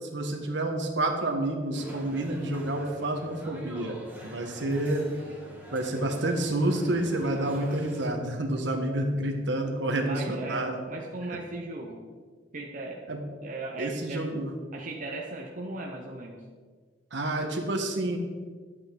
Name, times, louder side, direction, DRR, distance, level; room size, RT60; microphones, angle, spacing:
voice 1, 0.0-5.0 5.7-10.8 11.3-11.4 13.1-13.2 13.8-14.5 17.1-18.2, right 1 dB, 65° right, 3 dB, 1.4 m, -29 dB
sound 1, 1.7-8.1, right 1 dB, 10° right, 2.5 m, -46 dB
voice 2, 7.2-7.8 10.1-12.0 12.5-14.3 14.7-16.4, right 2 dB, 45° right, -1 dB, 0.9 m, -38 dB
12.0 x 8.0 x 3.9 m, 1.5 s
head